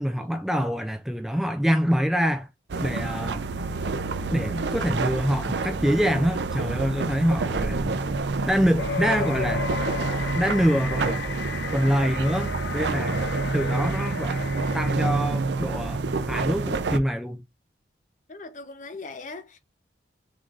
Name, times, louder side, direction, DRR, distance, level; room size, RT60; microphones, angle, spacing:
voice 1, 0.0-2.5 2.8-3.5 4.3-8.0 8.5-9.6 10.3-11.2 11.7-13.2 13.5-16.0 16.3-17.4, equal, ahead, 0.3 m, -25 dB
sound 1, 2.7-17.0, right 3 dB, 75° right, 0.5 m, -28 dB
sound 2, 8.8-14.9, left 6 dB, 80° left, 0.5 m, -34 dB
voice 2, 18.3-19.6, left 3 dB, 40° left, 0.7 m, -40 dB
3.8 x 3.7 x 3.1 m
head